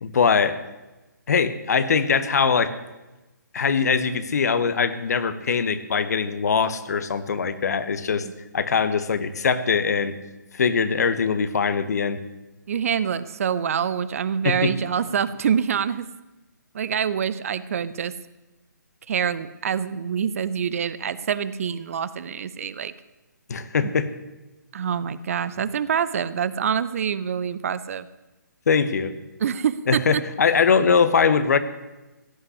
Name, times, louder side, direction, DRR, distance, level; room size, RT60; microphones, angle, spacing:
voice 1, 0.0-0.6 1.3-2.7 3.5-8.2 8.5-10.2 10.5-12.2 14.4-14.7 23.5-24.1 28.7-29.1 29.9-31.6, left 5 dB, 55° left, 12 dB, 1.1 m, -22 dB
voice 2, 12.7-16.1 16.7-18.1 19.1-22.9 23.8-23.9 24.7-28.1 29.4-30.2, right 7 dB, 45° right, 16 dB, 0.6 m, -26 dB
16.0 x 5.8 x 9.7 m, 1.1 s
figure-of-eight pair, 145°, 10 cm